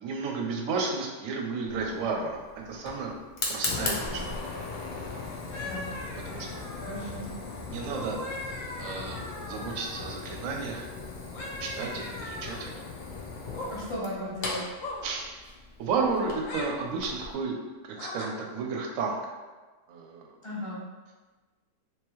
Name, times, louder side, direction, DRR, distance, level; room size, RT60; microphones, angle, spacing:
voice 1, 0.0-3.1 3.5-4.2 6.3-6.6 7.7-8.2 8.8-10.9 11.6-12.8 15.0-15.4 15.8-17.5 17.9-19.2 19.9-20.3, right 4 dB, 65° right, 1 dB, 0.9 m, -32 dB
Fire, 1.7-17.3, left 3 dB, 80° left, 0.4 m, -38 dB
sound 1, 5.5-7.2 7.8-10.2 11.3-12.7 13.4-13.7 14.8-15.1 16.3-16.7 18.0-18.3, left 1 dB, 65° left, 0.9 m, -40 dB
voice 2, 6.8-7.3 13.7-14.6 20.4-20.9, left 1 dB, 25° left, -7 dB, 0.9 m, -36 dB
3.6 x 2.9 x 3.0 m, 1.3 s
omnidirectional pair, 1.7 m